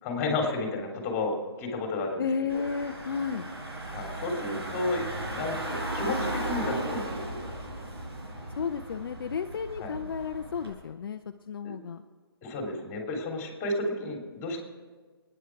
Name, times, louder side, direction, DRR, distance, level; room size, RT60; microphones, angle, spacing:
voice 1, 0.0-2.3 2.5-2.6 3.9-7.4 9.8-9.9 12.4-14.6, left 2 dB, 20° left, 1 dB, 3.3 m, -32 dB
voice 2, 2.2-3.5 8.5-12.0, left 6 dB, 60° left, 6 dB, 0.7 m, -33 dB
Car / Engine, 2.5-10.7, right 1 dB, 75° right, 5.8 m, -36 dB
28.0 x 10.0 x 4.7 m, 1.5 s
hypercardioid pair, 155°, 13 cm